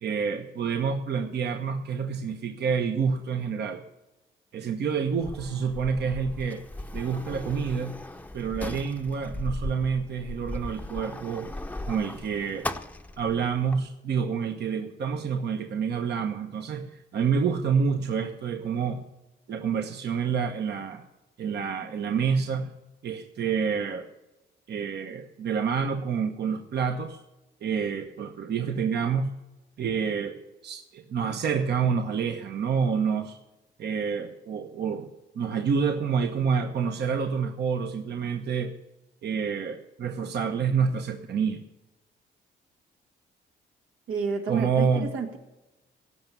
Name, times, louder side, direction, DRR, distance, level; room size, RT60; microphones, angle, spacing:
voice 1, 0.0-3.8 4.5-6.6 6.9-8.0 8.3-11.5 11.9-12.7 13.2-19.0 19.5-21.0 21.4-22.7 23.0-24.1 24.7-27.2 27.6-29.3 29.8-30.4 30.6-33.4 33.8-38.7 39.2-41.6 44.5-45.1, right 6 dB, 55° right, 5 dB, 1.1 m, -28 dB
Sliding door, 5.2-13.8, left 1 dB, 10° left, 0.8 m, -37 dB
voice 2, 44.1-45.4, right 5 dB, 85° right, 2 dB, 2.2 m, -30 dB
16.5 x 6.1 x 6.8 m, 1.0 s
cardioid pair, 90°, 20 cm